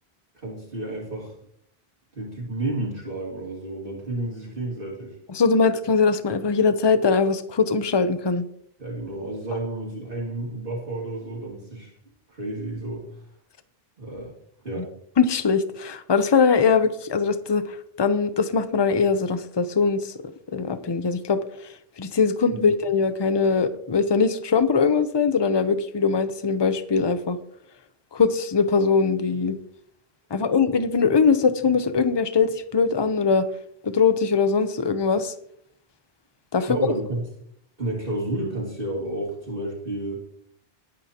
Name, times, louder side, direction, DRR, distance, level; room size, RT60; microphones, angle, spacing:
voice 1, 0.3-1.3 2.1-5.2 8.8-11.9 12.3-13.1 14.0-14.3 14.6-14.9 22.5-22.7 36.5-37.2 37.8-40.2, right 2 dB, 60° right, -4 dB, 3.0 m, -31 dB
voice 2, 5.3-8.4 14.8-14.9 15.2-20.1 20.5-21.4 22.0-27.4 28.1-29.6 30.3-33.5 33.8-35.3 36.5-36.8, left 5 dB, 30° left, 11 dB, 0.7 m, -21 dB
19.0 x 9.3 x 2.9 m, 0.68 s
omnidirectional pair, 1.0 m